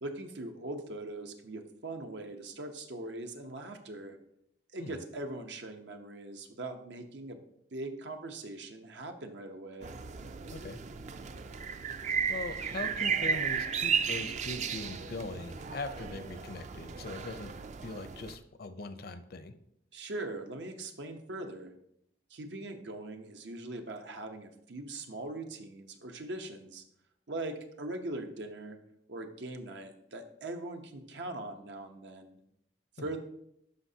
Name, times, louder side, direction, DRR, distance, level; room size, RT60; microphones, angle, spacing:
voice 1, 0.0-4.2 4.7-7.4 7.7-9.9 19.9-21.7 22.3-26.8 27.3-28.8 29.1-32.4 33.0-33.2, right 2 dB, 85° right, 5 dB, 0.9 m, -41 dB
sound 1, 9.8-18.4, right 6 dB, 40° right, 0.4 m, -34 dB
voice 2, 12.3-17.5 17.8-19.5 33.0-33.1, left 3 dB, 60° left, 10 dB, 0.6 m, -41 dB
12.0 x 5.0 x 2.8 m, 0.74 s
head